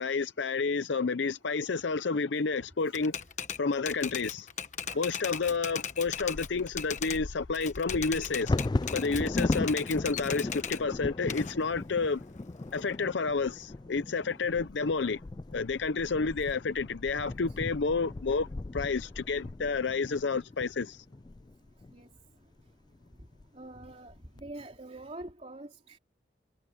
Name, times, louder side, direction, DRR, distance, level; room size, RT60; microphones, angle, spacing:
voice 1, 0.0-3.1 3.6-4.5 4.9-8.5 8.9-12.2 12.7-15.2 15.5-18.5 18.7-21.0, left 4 dB, 80° left, 0.6 m, -30 dB
Typewriter, 2.9-7.2 7.5-10.8 11.3-13.0, left 8 dB, 40° left, 1.2 m, -38 dB
Bird vocalization bird call bird song / Wind / Thunder, 6.1-21.9 22.6-22.7 23.0-23.4 23.9-24.4, left 2 dB, 25° left, 0.3 m, -37 dB
voice 2, 9.0-9.6 16.1-16.3 21.9-22.1 23.5-26.0, right 1 dB, 35° right, 3.6 m, -45 dB
head